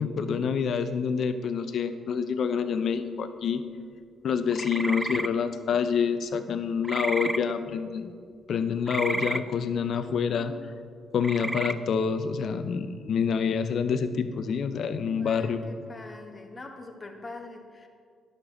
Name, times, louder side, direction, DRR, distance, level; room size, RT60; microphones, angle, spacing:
voice 1, 0.0-3.6 4.2-8.1 8.5-10.5 11.1-15.6, left 6 dB, 65° left, 10 dB, 0.6 m, -27 dB
sound 1, 4.5-5.3 6.8-7.4 8.9-9.4 11.2-11.7, right 1 dB, 15° right, 0.5 m, -31 dB
voice 2, 9.9-11.1 15.1-17.9, left 2 dB, 30° left, 2 dB, 1.4 m, -44 dB
10.5 x 6.8 x 4.3 m, 2.1 s
hypercardioid pair, 50°, 0 cm